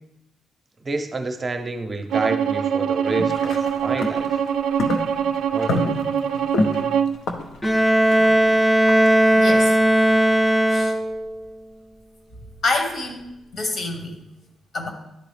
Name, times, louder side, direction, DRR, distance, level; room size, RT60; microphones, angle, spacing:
voice 1, 0.8-4.4 5.5-6.2, right 3 dB, 30° right, 6 dB, 0.7 m, -29 dB
Bowed string instrument, 2.1-7.2, right 8 dB, 85° right, 0.3 m, -23 dB
sound 1, 3.1-9.6, left 2 dB, 80° left, 0.7 m, -29 dB
Bowed string instrument 2, 7.6-11.4, right 1 dB, 5° left, 0.6 m, -17 dB
voice 2, 9.4-9.8 10.7-10.9 12.6-13.3 13.5-14.1 14.7-14.9, left 3 dB, 65° left, 3 dB, 1.4 m, -26 dB
11.0 x 3.9 x 3.3 m, 0.89 s
cardioid pair, 100°, 0 cm